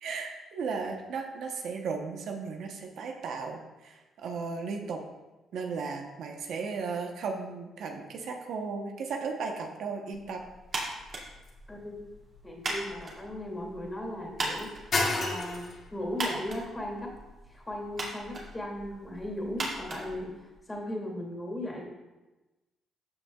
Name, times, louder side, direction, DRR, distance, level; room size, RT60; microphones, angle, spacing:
voice 1, 0.0-5.0 5.5-10.4 10.8-10.9, right 4 dB, 75° right, 3 dB, 1.0 m, -35 dB
sound 1, 10.1-20.2, left 3 dB, 50° left, 2.2 m, -38 dB
sound 2, 10.7-20.9, right 2 dB, 50° right, 2.4 m, -39 dB
voice 2, 12.4-14.7 15.1-17.1 17.5-20.3 20.7-21.8, left 1 dB, 20° left, 0 dB, 2.5 m, -37 dB
13.5 x 6.3 x 2.4 m, 1.1 s
cardioid pair, 90°, 0 cm